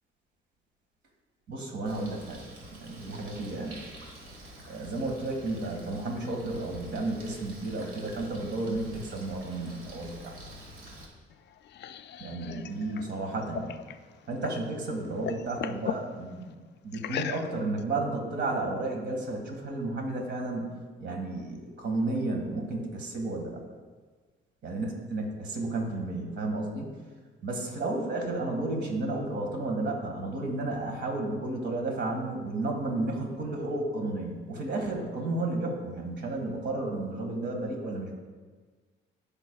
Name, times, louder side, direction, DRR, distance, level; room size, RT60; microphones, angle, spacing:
voice 1, 1.5-2.4 2.8-3.8 4.7-10.4 12.2-13.8 14.3-16.5 16.8-20.7 21.0-23.6 24.6-26.9 27.4-38.1, right 2 dB, 60° right, 1 dB, 1.8 m, -32 dB
Bird, 1.9-11.1, right 1 dB, 90° right, 1.6 m, -47 dB
sound 1, 11.3-14.7 15.0-16.1 16.9-17.8, left 9 dB, 60° left, 0.4 m, -38 dB
14.0 x 5.4 x 2.3 m, 1.4 s
cardioid pair, 90°, 20 cm